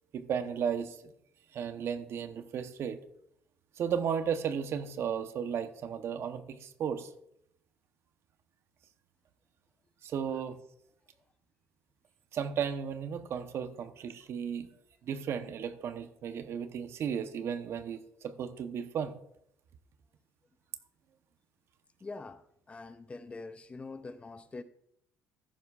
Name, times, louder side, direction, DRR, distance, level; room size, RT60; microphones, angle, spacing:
voice 1, 0.1-1.0 1.5-3.0 3.8-7.1 10.0-10.6 12.3-14.7 15.1-19.2, right 7 dB, 55° right, 0.9 m, -34 dB
voice 2, 22.0-24.6, left 3 dB, 25° left, 0.6 m, -44 dB
13.5 x 11.0 x 2.5 m
cardioid pair, 100°, 5 cm